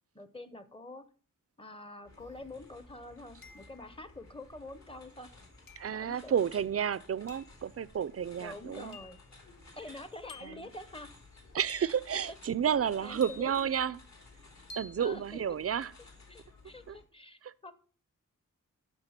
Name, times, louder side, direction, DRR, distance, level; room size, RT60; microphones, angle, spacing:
voice 1, 0.1-1.1 1.6-5.3 5.9-6.4 8.4-9.2 9.7-11.1 12.1-12.2 13.0-13.7 15.0-15.4 16.3-17.7, left 2 dB, 15° left, 0.8 m, -46 dB
sound 1, 2.0-17.0, left 3 dB, 55° left, 2.9 m, -56 dB
sound 2, 2.2-2.3 3.4-4.0 5.7-6.0 7.3-7.6 8.9-9.3 10.3-10.7 11.7-12.1 13.2-13.7 14.7-15.0, left 3 dB, 85° left, 1.2 m, -50 dB
voice 2, 5.8-9.0 10.4-10.7 11.5-14.0 14.8-15.9 16.9-17.0 17.4-17.7, right 8 dB, 45° right, 0.4 m, -31 dB
8.9 x 6.0 x 5.8 m
wide cardioid pair, 85°, 33 cm